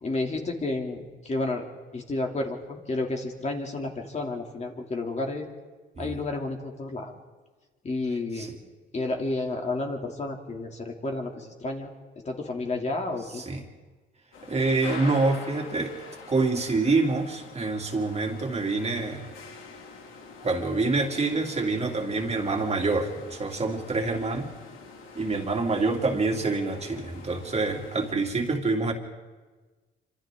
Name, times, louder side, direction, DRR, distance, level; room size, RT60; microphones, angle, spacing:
voice 1, 0.0-1.6 1.9-5.5 6.0-7.1 7.8-8.5 8.9-11.9 12.2-13.4, left 2 dB, 35° left, 1 dB, 3.0 m, -31 dB
sound 1, 14.3-28.1, left 4 dB, 85° left, 2.8 m, -45 dB
voice 2, 14.5-15.9 16.3-19.3 20.4-24.5 25.1-28.9, right 3 dB, 30° right, 2 dB, 2.9 m, -26 dB
27.0 x 26.0 x 3.8 m, 1.3 s
cardioid pair, 90°, 20 cm